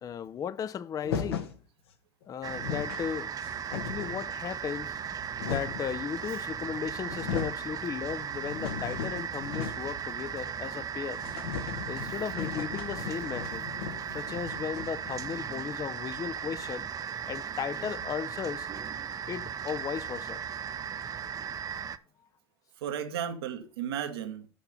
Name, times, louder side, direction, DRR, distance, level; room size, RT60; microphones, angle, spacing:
voice 1, 0.0-1.5 2.3-3.3 3.7-5.0 5.4-11.2 11.8-13.6 14.1-16.9 17.3-18.7 19.3-20.4, left 8 dB, 25° left, 0.4 m, -36 dB
sound 1, 1.0-1.6 2.2-2.3 2.5-3.1 3.4-4.3 5.0-5.9 6.7-6.8 7.0-7.6 8.1-10.0 10.3-10.4 10.7-10.8 11.2-15.7, left 7 dB, 80° left, 1.2 m, -37 dB
sound 2, 2.4-22.0, right 8 dB, 30° right, 0.6 m, -37 dB
voice 2, 12.0-12.5 22.8-24.5, right 9 dB, 80° right, 1.4 m, -35 dB
7.1 x 6.6 x 5.6 m
hypercardioid pair, 85°, 13 cm